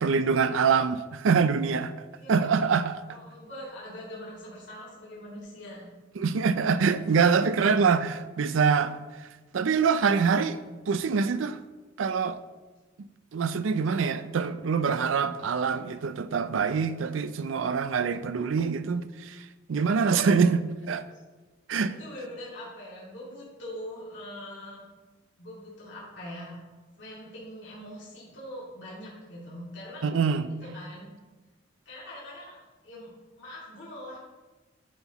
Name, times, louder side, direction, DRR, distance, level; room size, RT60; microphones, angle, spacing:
voice 1, 0.0-3.0 6.2-9.0 9.5-10.6 10.9-11.6 12.0-12.4 13.3-21.0 21.7-21.9 30.0-30.5, right 5 dB, 80° right, 0.4 m, -25 dB
voice 2, 2.1-2.7 3.1-5.9 21.8-24.8 25.4-26.6 27.0-30.1 30.6-31.1 31.8-32.6 32.8-33.1 33.4-34.2, left 1 dB, 65° left, 2.5 m, -42 dB
9.4 x 5.8 x 3.0 m
head